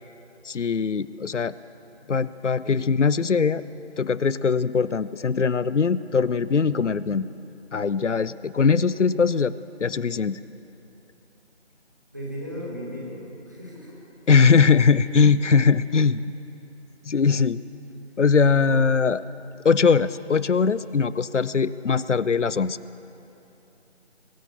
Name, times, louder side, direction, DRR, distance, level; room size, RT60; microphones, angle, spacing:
voice 1, 0.4-1.5 2.1-3.6 4.0-7.3 7.7-9.5 9.8-10.4 14.3-16.2 17.1-17.6 18.2-19.2 19.6-22.8, left 5 dB, 85° left, 16 dB, 0.6 m, -21 dB
voice 2, 12.1-14.0, equal, 15° right, -5 dB, 1.6 m, -36 dB
23.0 x 7.8 x 7.0 m, 2.9 s
figure-of-eight pair, 170°, 35 cm